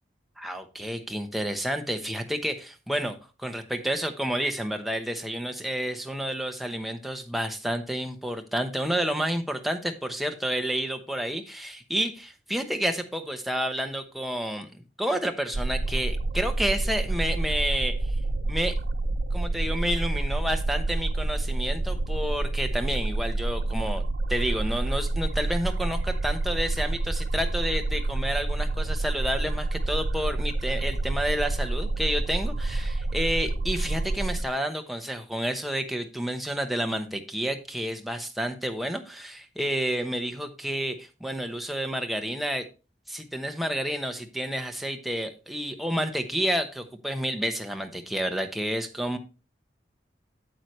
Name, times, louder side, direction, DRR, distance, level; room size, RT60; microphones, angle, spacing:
voice 1, 0.4-14.7 15.0-18.1 18.5-18.8 19.3-42.7 43.1-49.2, equal, ahead, 5 dB, 0.9 m, -30 dB
sound 1, 15.5-34.4, right 2 dB, 80° right, 0.7 m, -28 dB
8.7 x 8.1 x 3.1 m, 0.31 s
head